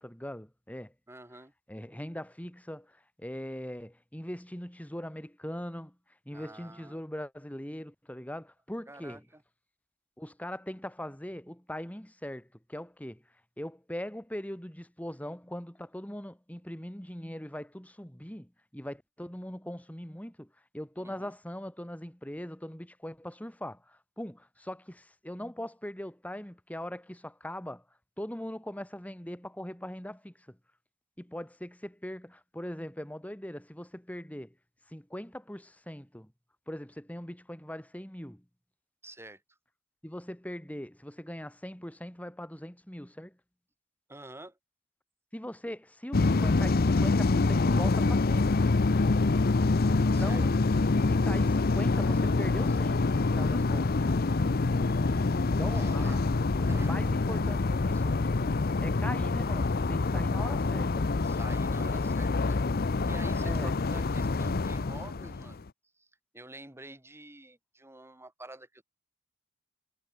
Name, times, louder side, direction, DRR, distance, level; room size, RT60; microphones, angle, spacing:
voice 1, 0.0-0.9 1.7-6.0 6.3-9.2 10.2-13.2 13.6-27.8 28.2-30.6 31.2-34.5 34.9-36.3 36.7-38.4 40.0-43.4 45.3-48.5 50.0-50.6 51.1-53.9 55.6-56.2 56.6-61.1 63.4-63.7, equal, 10° left, 2.3 m, -41 dB
voice 2, 1.1-1.5 6.3-7.0 8.9-9.4 21.0-21.3 39.0-39.4 44.1-44.6 50.1-50.5 55.7-56.4 56.7-57.0 61.2-62.6 63.0-65.7 66.0-66.1 66.3-68.8, right 1 dB, 15° right, 4.5 m, -48 dB
sound 1, 46.1-65.6, left 3 dB, 50° left, 0.7 m, -26 dB
head